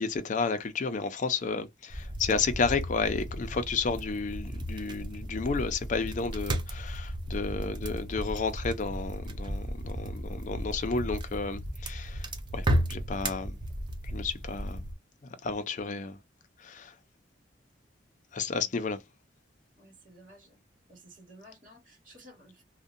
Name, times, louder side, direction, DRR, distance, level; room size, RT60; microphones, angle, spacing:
voice 1, 0.0-12.3 12.5-13.6 14.0-14.8 15.4-16.2 16.6-16.9 18.3-19.0, left 4 dB, 40° left, 0.4 m, -32 dB
sound 1, 1.9-14.9, equal, 25° right, 0.5 m, -34 dB
voice 2, 19.8-20.6 20.9-22.6, right 1 dB, 45° right, 1.5 m, -54 dB
2.6 x 2.1 x 2.4 m
head